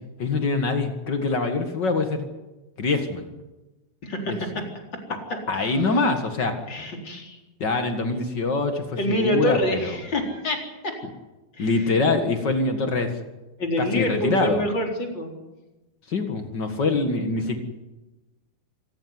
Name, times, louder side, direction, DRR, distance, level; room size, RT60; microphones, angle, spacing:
voice 1, 0.2-2.2 2.8-3.3 4.3-4.4 5.5-6.5 7.6-9.9 11.6-13.1 13.8-14.6 16.1-17.6, left 3 dB, 65° left, 6 dB, 1.0 m, -24 dB
voice 2, 4.0-4.6 4.9-5.0 5.3-6.0 6.7-7.4 9.0-11.0 11.5-11.9 13.6-15.3, left 1 dB, 25° left, 2 dB, 4.3 m, -27 dB
26.5 x 15.0 x 9.6 m, 1.1 s
omnidirectional pair, 5.2 m